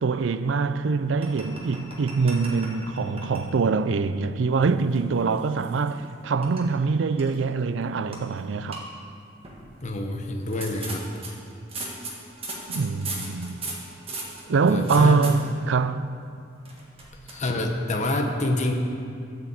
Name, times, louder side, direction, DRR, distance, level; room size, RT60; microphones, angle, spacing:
voice 1, 0.0-8.9 12.7-13.6 14.5-16.1, right 4 dB, 70° right, 0.4 m, -24 dB
sound 1, 1.2-3.5 3.8-4.0 4.6-6.1 6.4-6.6 7.2-7.6 8.1-8.2 8.5-8.8 9.4-9.8 10.4-15.3 16.6-17.4, right 2 dB, 30° right, 1.6 m, -37 dB
voice 2, 9.8-11.0 14.6-15.2 17.3-18.7, left 2 dB, 40° left, 0.9 m, -27 dB
12.5 x 4.9 x 8.1 m
head